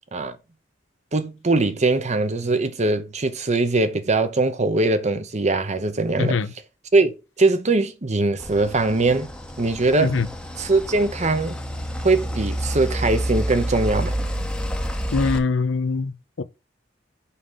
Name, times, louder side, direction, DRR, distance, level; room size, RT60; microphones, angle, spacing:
voice 1, 1.1-6.4 6.9-9.3 9.6-10.2 10.6-11.6 12.0-14.1, right 3 dB, 40° right, 0.8 m, -21 dB
voice 2, 6.2-6.5 10.0-10.3 15.1-16.4, left 4 dB, 80° left, 0.6 m, -23 dB
sound 1, 8.4-15.4, equal, 5° left, 0.8 m, -29 dB
5.6 x 4.9 x 5.6 m
head